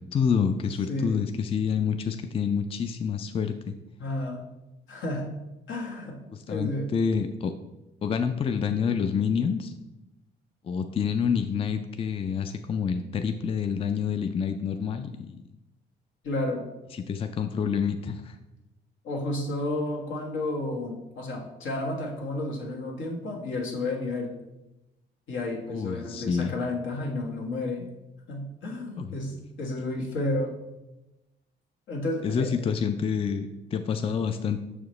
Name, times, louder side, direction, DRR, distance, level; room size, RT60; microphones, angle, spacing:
voice 1, 0.1-3.7 6.5-7.5 8.0-9.7 10.6-15.4 16.9-18.4 25.7-26.5 29.0-29.1 32.2-34.6, left 6 dB, 30° left, 8 dB, 0.4 m, -28 dB
voice 2, 0.9-1.3 4.0-4.4 4.9-5.3 5.7-6.2 6.5-6.9 16.2-16.7 19.0-24.4 25.3-27.9 28.3-30.5 31.9-32.5, left 2 dB, 75° left, 0 dB, 1.3 m, -31 dB
6.3 x 4.9 x 3.1 m, 0.98 s
cardioid pair, 90°, 20 cm